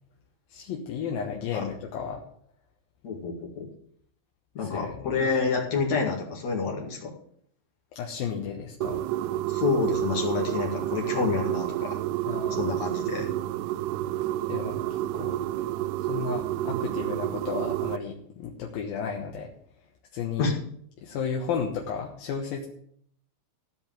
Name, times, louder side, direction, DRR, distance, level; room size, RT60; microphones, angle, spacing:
voice 1, 0.5-2.2 4.6-5.3 7.9-9.0 12.3-12.7 14.5-15.7 16.1-19.5 20.1-20.5 21.0-22.7, left 6 dB, 65° left, 0 dB, 2.5 m, -33 dB
voice 2, 3.0-3.7 4.5-7.1 9.5-12.0 12.6-13.3 20.4-20.5, left 5 dB, 45° left, -1 dB, 2.6 m, -28 dB
sound 1, 8.8-18.0, right 14 dB, 85° right, 2.3 m, -29 dB
15.0 x 5.3 x 9.0 m, 0.65 s
omnidirectional pair, 5.5 m